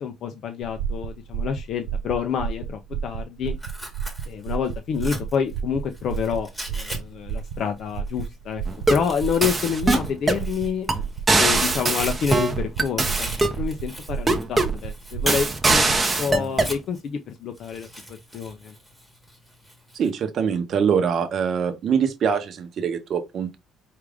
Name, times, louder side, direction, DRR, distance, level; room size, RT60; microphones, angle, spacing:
voice 1, 0.0-3.6 4.3-8.6 8.9-10.9 11.4-13.3 13.6-15.9 16.2-18.7, left 7 dB, 50° left, 0.4 m, -28 dB
sound 1, 0.6-16.0, right 7 dB, 85° right, 0.4 m, -32 dB
Tearing, 3.5-7.0 7.3-11.2 11.5-17.1 17.5-20.1, equal, 5° left, 1.1 m, -39 dB
sound 2, 8.7-9.1 9.4-10.5 10.9-11.0 11.3-13.6 14.3-14.8 15.3-16.7, right 2 dB, 15° right, 0.7 m, -21 dB
voice 2, 19.9-23.5, right 7 dB, 45° right, 0.8 m, -23 dB
4.7 x 2.4 x 3.3 m
cardioid pair, 155°, 0 cm